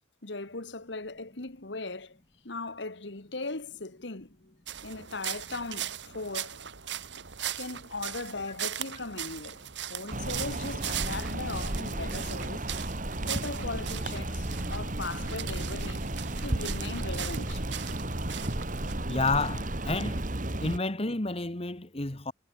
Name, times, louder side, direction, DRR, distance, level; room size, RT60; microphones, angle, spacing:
voice 1, 0.2-2.2 2.4-4.5 4.8-6.6 7.6-9.6 9.9-12.7 13.2-16.1 16.4-17.6, left 3 dB, 70° left, 1.9 m, -38 dB
sound 1, 4.7-18.9, right 10 dB, 75° right, 1.8 m, -39 dB
sound 2, 10.1-20.8, right 1 dB, 45° right, 2.3 m, -33 dB
voice 2, 19.1-20.3 20.6-22.3, left 3 dB, 30° left, 1.6 m, -30 dB
head